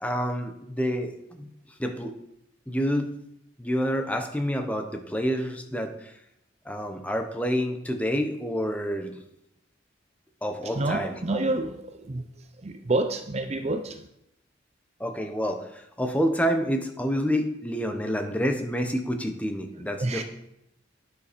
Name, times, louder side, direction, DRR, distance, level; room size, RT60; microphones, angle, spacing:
voice 1, 0.0-2.1 2.7-3.1 3.6-6.2 6.6-9.2 10.4-11.4 15.0-20.2, equal, 5° left, 5 dB, 1.0 m, -28 dB
voice 2, 10.6-14.1 20.0-20.2, right 2 dB, 35° right, 8 dB, 0.5 m, -29 dB
10.0 x 7.0 x 5.2 m, 0.81 s
head